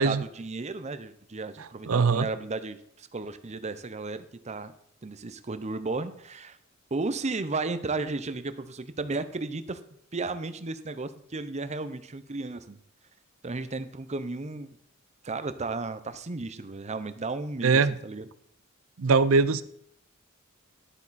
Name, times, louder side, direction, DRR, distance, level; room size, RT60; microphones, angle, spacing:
voice 1, 0.0-4.7 5.0-6.6 6.9-9.8 10.1-12.8 13.4-14.7 15.2-18.3, right 3 dB, 35° right, 12 dB, 0.7 m, -34 dB
voice 2, 1.9-2.3 17.6-17.9 19.0-19.6, right 4 dB, 75° right, 15 dB, 0.6 m, -21 dB
12.0 x 8.5 x 4.2 m, 0.69 s
head